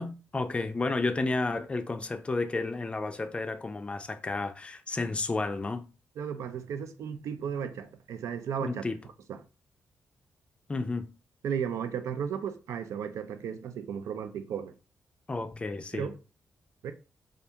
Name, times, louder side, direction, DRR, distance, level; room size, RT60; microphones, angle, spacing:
voice 1, 0.0-5.9 8.6-9.0 10.7-11.1 15.3-16.1, left 3 dB, 20° left, 0.4 m, -32 dB
voice 2, 6.2-8.8 9.3-9.4 11.4-14.7 15.9-16.2 16.8-16.9, right 7 dB, 80° right, 0.4 m, -34 dB
2.4 x 2.2 x 2.8 m
cardioid pair, 85°, 5 cm